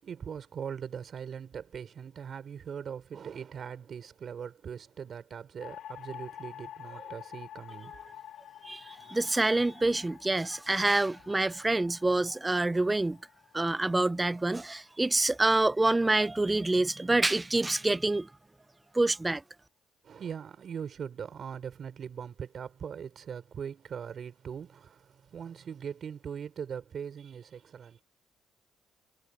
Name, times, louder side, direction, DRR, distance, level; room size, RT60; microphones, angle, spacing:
voice 1, 0.0-8.0 20.0-28.0, right 7 dB, 55° right, 4.8 m, -41 dB
sound 1, 5.6-15.9, left 11 dB, 80° left, 2.7 m, -49 dB
voice 2, 8.6-13.2 13.5-18.3 18.9-19.4, right 2 dB, 15° right, 0.3 m, -27 dB
cardioid pair, 90°, 0 cm